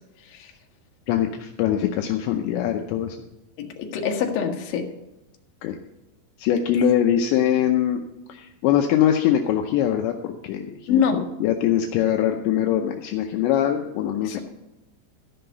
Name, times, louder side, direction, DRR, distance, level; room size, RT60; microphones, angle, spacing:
voice 1, 1.1-3.2 5.6-5.8 6.4-8.0 8.3-14.4, left 10 dB, 80° left, 4 dB, 2.8 m, -22 dB
voice 2, 3.6-4.8 10.9-11.2 14.2-14.4, left 7 dB, 60° left, 2 dB, 2.8 m, -24 dB
13.5 x 5.9 x 6.7 m, 0.96 s
omnidirectional pair, 5.3 m